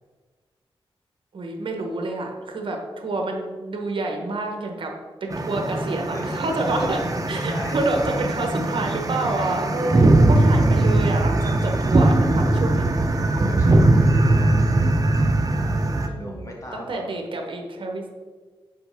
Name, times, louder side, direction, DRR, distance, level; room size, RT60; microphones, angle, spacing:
voice 1, 1.3-4.9 5.2-7.0 7.3-12.9 16.1-18.1, right 2 dB, 65° right, 2 dB, 1.0 m, -28 dB
sound 1, 5.3-16.1, right 2 dB, 40° right, 0.6 m, -20 dB
voice 2, 6.0-7.0 7.4-7.8 13.3-14.7 16.2-17.1, left 1 dB, 35° left, -2 dB, 1.6 m, -36 dB
6.9 x 4.4 x 3.5 m, 1.4 s
wide cardioid pair, 85°, 10 cm